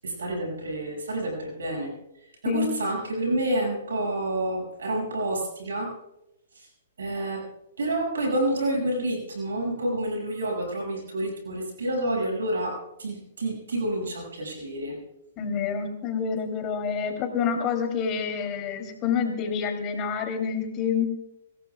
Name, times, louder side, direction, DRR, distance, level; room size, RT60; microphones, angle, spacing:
voice 1, 0.0-1.9 2.2-5.9 6.5-6.7 7.0-7.5 7.8-15.0, right 1 dB, 80° right, -1 dB, 6.5 m, -29 dB
voice 2, 15.4-21.1, left 6 dB, 30° left, 4 dB, 3.3 m, -28 dB
25.5 x 17.5 x 2.4 m, 0.87 s
hypercardioid pair, 125°, 0 cm